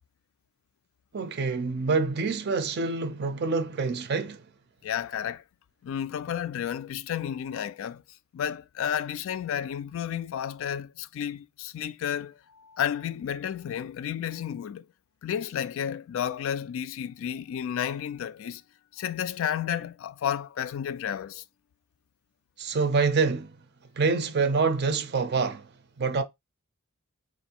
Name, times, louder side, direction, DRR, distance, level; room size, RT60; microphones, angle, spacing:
voice 1, 1.1-4.5 22.6-23.6 24.0-25.7 26.0-26.2, right 4 dB, 50° right, 0.5 m, -26 dB
voice 2, 4.8-5.4 5.8-8.0 8.3-14.9 15.2-18.6 18.9-21.4, left 9 dB, 65° left, 0.3 m, -32 dB
4.0 x 2.5 x 2.8 m
head